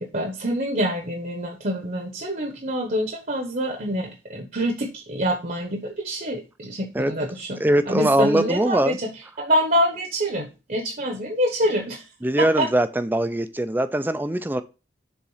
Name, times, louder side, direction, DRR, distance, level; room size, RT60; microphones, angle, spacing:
voice 1, 0.0-7.6 7.9-12.1 12.4-12.7, equal, 45° right, 4 dB, 1.1 m, -26 dB
voice 2, 7.6-9.0 12.2-14.6, right 1 dB, 10° right, 12 dB, 0.5 m, -21 dB
7.2 x 3.8 x 5.6 m, 0.29 s
head